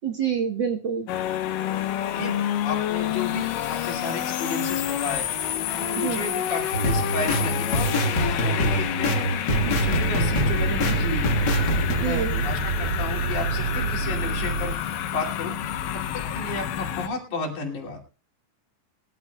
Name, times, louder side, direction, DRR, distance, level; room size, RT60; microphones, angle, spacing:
voice 1, 0.0-1.1 6.0-6.2 11.9-12.5, right 7 dB, 65° right, 3 dB, 1.1 m, -27 dB
sound 1, 1.1-17.1, left 10 dB, 90° left, 2.7 m, -29 dB
voice 2, 2.1-5.3 5.7-9.2 9.7-11.4 12.0-14.8 15.1-15.6 15.9-18.0, left 3 dB, 70° left, -1 dB, 4.1 m, -33 dB
sound 2, 6.7-12.0, equal, 40° left, 1.8 m, -25 dB
sound 3, 9.5-14.7, right 4 dB, 85° right, 1.2 m, -28 dB
22.0 x 13.5 x 2.3 m, 0.34 s
omnidirectional pair, 3.7 m